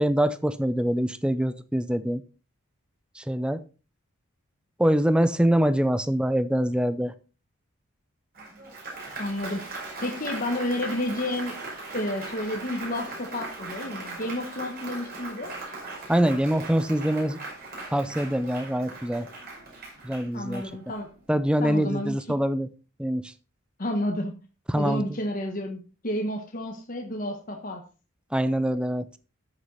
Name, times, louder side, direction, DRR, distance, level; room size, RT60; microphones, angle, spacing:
voice 1, 0.0-2.2 3.2-3.6 4.8-7.1 16.1-17.4 17.9-19.3 20.0-20.6 21.3-22.7 23.0-23.3 24.7-25.0 28.3-29.0, right 1 dB, 5° right, 12 dB, 0.5 m, -24 dB
Applause, 8.3-21.1, right 2 dB, 45° right, 5.6 m, -39 dB
voice 2, 9.2-9.7 10.0-11.6 11.9-15.5 20.3-21.1 21.6-22.2 23.8-24.3 24.7-27.8, left 1 dB, 40° left, 2 dB, 1.3 m, -30 dB
12.5 x 6.6 x 4.1 m, 0.33 s
head